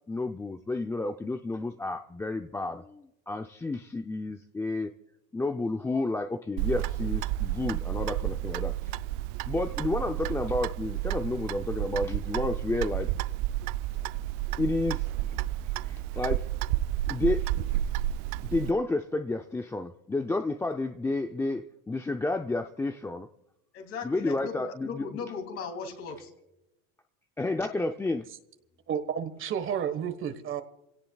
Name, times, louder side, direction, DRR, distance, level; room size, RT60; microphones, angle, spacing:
voice 1, 0.1-4.9 5.3-8.7 9.5-13.1 14.6-15.1 15.8-16.5 17.1-17.5 18.5-23.3 24.0-25.0 27.4-28.3, left 2 dB, 10° left, 0.5 m, -31 dB
Clock, 6.6-18.7, right 14 dB, 60° right, 0.5 m, -31 dB
voice 2, 23.7-26.3, left 5 dB, 40° left, 3.1 m, -38 dB
voice 3, 28.9-30.6, right 8 dB, 35° right, 1.4 m, -31 dB
27.5 x 17.5 x 2.3 m
supercardioid pair, 130°, 35 cm